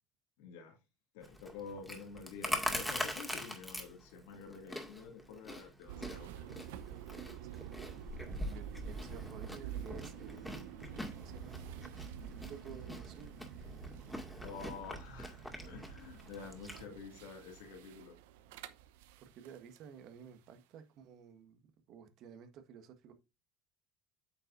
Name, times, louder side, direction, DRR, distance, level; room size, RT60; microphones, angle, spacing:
voice 1, 0.4-0.8 1.1-6.4 14.4-18.2, left 5 dB, 75° left, 2.2 m, -49 dB
Chewing mastication, 1.2-16.8, left 1 dB, 5° left, 2.1 m, -43 dB
sound 1, 5.9-19.8, right 10 dB, 75° right, 0.7 m, -49 dB
voice 2, 7.5-8.1 8.4-11.6 12.2-13.4 19.2-23.1, right 8 dB, 60° right, 1.5 m, -53 dB
8.9 x 6.7 x 2.6 m
hypercardioid pair, 70°, 0 cm